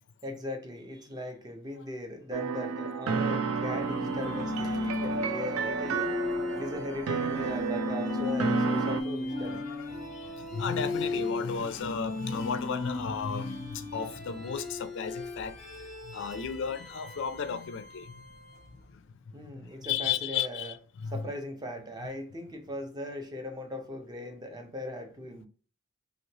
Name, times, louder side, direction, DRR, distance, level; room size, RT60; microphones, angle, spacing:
voice 1, 0.2-6.1 6.6-9.7 19.3-20.7 21.1-25.5, left 1 dB, 20° right, 0.5 m, -39 dB
sound 1, 2.3-9.0, right 5 dB, 75° right, 0.4 m, -31 dB
sound 2, 3.7-18.8, left 2 dB, ahead, 0.8 m, -36 dB
voice 2, 9.4-9.9 10.1-15.6 16.1-18.1 19.8-21.2, left 7 dB, 55° left, 0.3 m, -34 dB
3.0 x 2.8 x 2.8 m
head